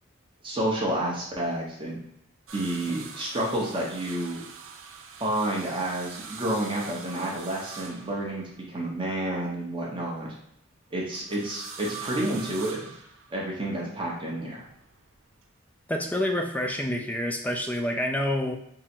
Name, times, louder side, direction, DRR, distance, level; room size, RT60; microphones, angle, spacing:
voice 1, 0.4-2.0 2.5-4.4 5.2-10.3 10.9-13.0 13.3-14.6, right 1 dB, 25° right, -4 dB, 0.7 m, -30 dB
sound 1, 2.5-8.7 11.1-13.6 14.7-15.4 16.9-17.0, right 6 dB, 80° right, 0.4 m, -43 dB
voice 2, 15.9-18.6, left 1 dB, 10° left, 3 dB, 0.3 m, -27 dB
3.7 x 2.1 x 4.3 m, 0.73 s
head